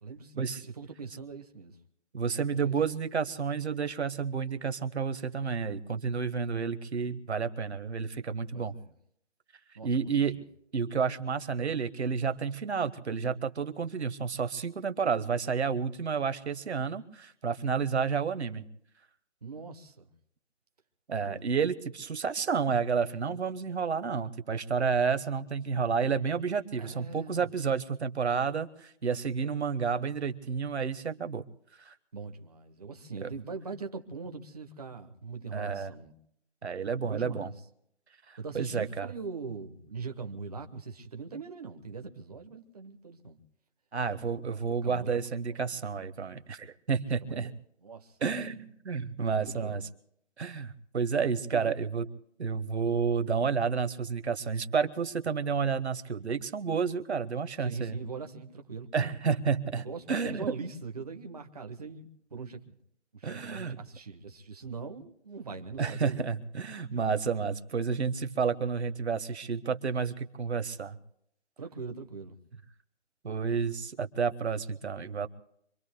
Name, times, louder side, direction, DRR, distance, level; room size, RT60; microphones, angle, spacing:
voice 1, 0.0-1.8 2.6-2.8 8.5-8.9 9.7-10.4 19.4-20.1 21.2-21.5 26.8-27.5 32.1-36.1 37.0-37.6 38.4-43.4 44.4-45.2 45.5-45.6 47.2-47.5 47.8-48.2 49.4-49.8 51.5-51.7 57.6-58.9 59.7-62.8 63.1-66.3 71.6-72.4, right 4 dB, 30° right, 1.1 m, -42 dB
voice 2, 2.1-8.7 9.8-10.4 10.7-18.6 21.1-31.4 31.8-31.9 33.2-33.3 35.5-35.9 36.6-37.5 38.3-39.1 43.9-47.5 48.2-49.8 50.4-52.1 52.4-58.0 58.9-60.5 63.2-63.8 65.8-71.0 73.2-75.3, right 6 dB, 60° right, 1.2 m, -30 dB
26.5 x 24.5 x 2.2 m
hypercardioid pair, 175°, 36 cm